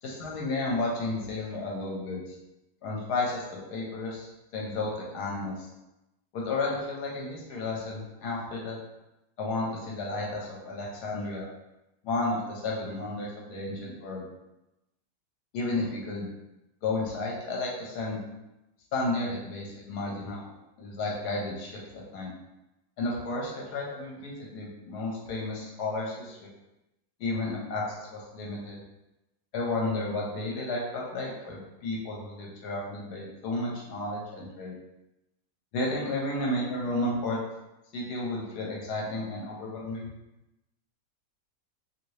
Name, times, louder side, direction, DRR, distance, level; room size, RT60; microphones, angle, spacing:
voice 1, 0.0-2.2 2.8-3.4 3.7-5.5 6.3-8.8 9.4-11.5 12.0-14.3 15.5-16.3 16.8-18.2 18.9-20.5 20.8-22.3 23.0-26.5 27.2-28.8 29.5-34.7 35.7-37.4 37.9-40.1, left 2 dB, 70° left, -3 dB, 1.2 m, -32 dB
2.9 x 2.6 x 3.1 m, 0.96 s
omnidirectional pair, 1.9 m